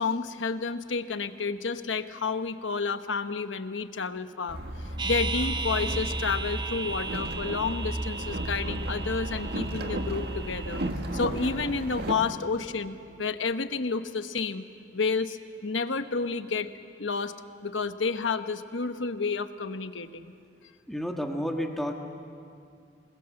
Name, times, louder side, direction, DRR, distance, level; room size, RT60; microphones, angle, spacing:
voice 1, 0.0-10.8 11.1-14.6 14.9-16.7 17.0-17.3 17.6-20.3, left 4 dB, 80° left, 10 dB, 1.0 m, -30 dB
Boat Water vehicle, 4.5-12.1, right 1 dB, 60° right, 1.7 m, -33 dB
sound 1, 5.0-10.9, right 4 dB, 25° right, 0.7 m, -36 dB
voice 2, 20.9-21.9, equal, ahead, 2 dB, 1.6 m, -30 dB
28.0 x 20.5 x 7.7 m, 2.4 s
head